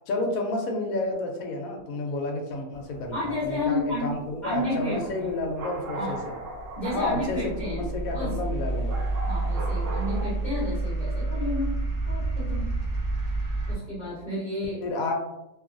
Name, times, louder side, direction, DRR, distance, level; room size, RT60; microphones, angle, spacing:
voice 1, 0.1-6.4 6.9-9.0 14.8-15.1, left 2 dB, 70° left, 2 dB, 0.9 m, -30 dB
sound 1, 2.7-10.2, right 1 dB, 60° right, 1.0 m, -40 dB
voice 2, 3.1-4.1 4.4-5.3 6.0-6.2 6.8-8.4 9.3-11.7 12.1-12.7 13.7-14.8, left 1 dB, 40° left, -8 dB, 0.7 m, -31 dB
sound 2, 6.5-13.7, right 2 dB, 45° right, 0.6 m, -29 dB
2.9 x 2.4 x 2.5 m, 0.94 s
omnidirectional pair, 1.7 m